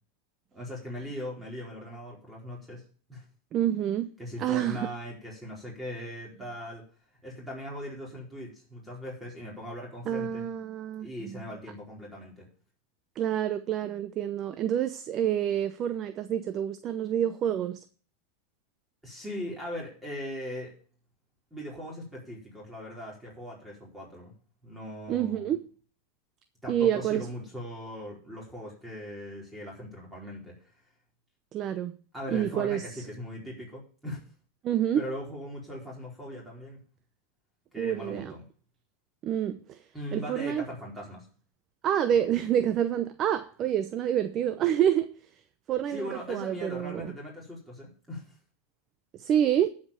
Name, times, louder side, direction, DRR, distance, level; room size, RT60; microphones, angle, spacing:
voice 1, 0.5-2.8 3.1-3.2 4.2-6.8 7.2-10.5 11.0-12.5 19.0-20.8 21.5-24.3 24.6-25.5 26.6-30.7 32.1-34.2 35.0-36.8 37.7-38.4 39.9-41.3 45.9-48.3, equal, 5° right, 4.5 m, -39 dB
voice 2, 3.5-4.1 4.4-4.9 10.1-11.4 13.2-17.8 25.1-25.7 26.7-27.3 31.5-31.9 32.3-33.0 34.6-35.0 37.8-38.3 39.2-39.8 40.1-40.7 41.8-45.1 45.7-47.1 49.1-49.7, right 10 dB, 35° right, 0.7 m, -28 dB
11.5 x 5.2 x 7.1 m
supercardioid pair, 125°, 0 cm